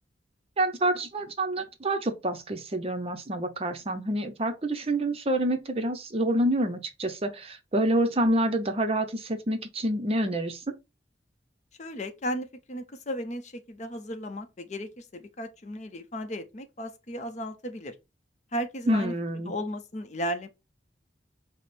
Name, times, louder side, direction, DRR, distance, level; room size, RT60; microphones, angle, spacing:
voice 1, 0.6-10.8 18.9-19.6, right 1 dB, 35° right, 0.6 m, -27 dB
voice 2, 11.8-17.9 18.5-19.1 19.4-20.5, equal, 40° left, 0.6 m, -35 dB
5.0 x 2.0 x 4.0 m
head